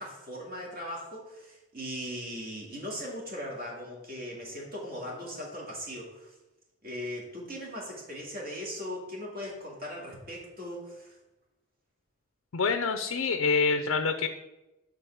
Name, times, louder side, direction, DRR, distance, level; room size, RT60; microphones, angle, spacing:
voice 1, 0.0-6.3 6.8-11.1, equal, 45° right, -2 dB, 2.3 m, -39 dB
voice 2, 12.5-14.3, left 4 dB, 80° left, 7 dB, 0.5 m, -26 dB
9.0 x 3.8 x 7.0 m, 1.0 s
head